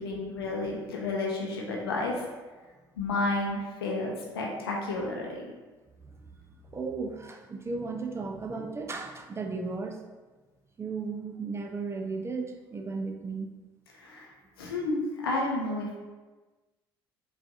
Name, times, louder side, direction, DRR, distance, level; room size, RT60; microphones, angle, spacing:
voice 1, 0.0-2.2 3.0-5.5 14.0-14.3 14.6-16.0, left 2 dB, 80° left, -1 dB, 0.6 m, -31 dB
voice 2, 6.1-6.4 6.7-10.0 10.8-13.5, right 4 dB, 20° right, 2 dB, 0.5 m, -35 dB
4.7 x 2.5 x 2.5 m, 1.3 s
figure-of-eight pair, 55°, 12 cm